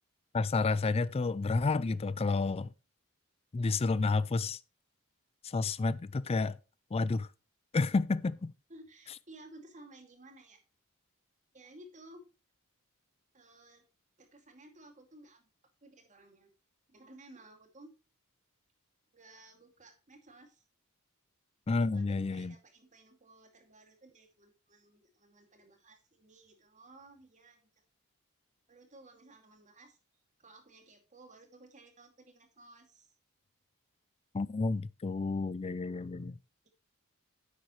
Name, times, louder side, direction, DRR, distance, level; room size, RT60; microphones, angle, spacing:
voice 1, 0.3-2.7 3.5-4.6 5.4-6.6 6.9-7.3 7.7-8.5 21.7-22.5 34.3-36.4, left 3 dB, 25° left, 0.4 m, -30 dB
voice 2, 8.7-10.6 11.5-12.3 13.3-13.8 14.2-15.5 15.8-16.5 16.9-18.0 19.1-20.6 21.8-27.7 28.7-30.0 30.4-33.1, right 2 dB, 35° right, 2.4 m, -56 dB
10.5 x 8.2 x 3.1 m
head